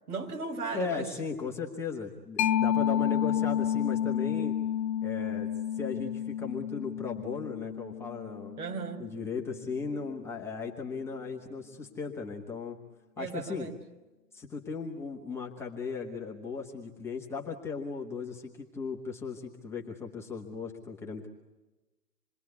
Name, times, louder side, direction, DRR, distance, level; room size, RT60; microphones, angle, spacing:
voice 1, 0.1-1.1 8.6-9.1 13.2-13.8, right 4 dB, 60° right, 5 dB, 5.2 m, -36 dB
voice 2, 0.7-4.5 5.0-8.6 9.0-12.8 13.2-13.7 14.3-21.3, left 5 dB, 5° left, -1 dB, 1.2 m, -37 dB
Mallet percussion, 2.4-9.7, left 10 dB, 80° left, 0.8 m, -30 dB
28.0 x 21.5 x 8.2 m, 1.1 s
hypercardioid pair, 150°, 49 cm